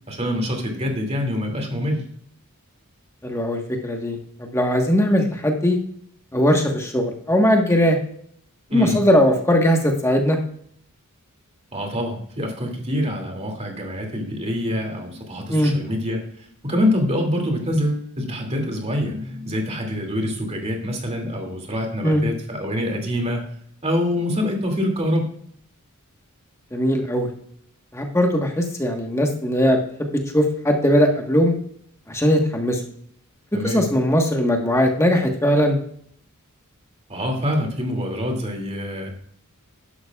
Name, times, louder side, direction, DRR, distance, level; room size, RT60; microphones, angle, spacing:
voice 1, 0.1-2.0 8.7-9.0 11.7-23.4 23.8-25.3 33.5-33.8 37.1-39.1, left 1 dB, 30° right, 2 dB, 2.6 m, -25 dB
voice 2, 3.2-5.8 6.3-8.0 8.7-10.4 15.5-15.7 22.0-22.2 26.7-27.3 27.9-31.5 32.1-32.8 33.6-35.8, equal, 10° left, 2 dB, 1.4 m, -19 dB
11.5 x 11.5 x 2.4 m, 0.63 s
head